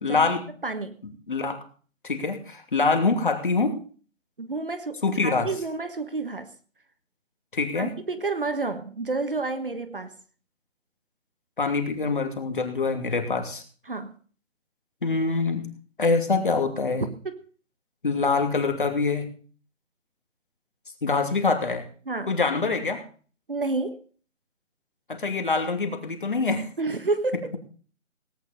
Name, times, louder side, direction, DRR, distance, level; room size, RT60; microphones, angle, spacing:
voice 1, 0.0-0.5 1.3-1.6 2.0-3.8 5.0-5.5 7.5-8.0 11.6-13.6 15.0-15.7 16.0-17.1 18.0-19.3 21.0-21.8 22.3-23.0 25.1-26.7 27.3-27.4, left 4 dB, 40° left, 5 dB, 2.7 m, -25 dB
voice 2, 0.6-1.0 4.4-6.5 7.7-10.1 13.9-14.1 17.2-17.4 22.1-22.3 23.5-24.0 26.8-27.6, right 3 dB, 40° right, 9 dB, 1.3 m, -30 dB
18.0 x 9.5 x 5.2 m, 0.41 s
hypercardioid pair, 175°, 40 cm